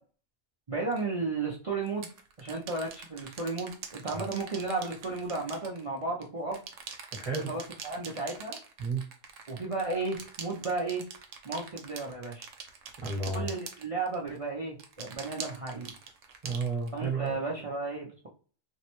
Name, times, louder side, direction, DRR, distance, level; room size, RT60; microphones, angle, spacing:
voice 1, 0.7-2.1 2.4-6.6 7.5-8.6 9.5-11.0 11.4-12.5 13.3-15.9 16.9-18.3, right 3 dB, 45° right, -3 dB, 0.4 m, -34 dB
sound 1, 0.9-1.0 1.9-6.2 6.5-14.4 14.8-17.3, right 6 dB, 75° right, 1.0 m, -44 dB
voice 2, 7.1-7.5 8.8-9.0 13.0-13.5 16.4-17.4, right 4 dB, 30° right, -2 dB, 1.2 m, -32 dB
3.4 x 2.1 x 3.0 m, 0.40 s
omnidirectional pair, 1.3 m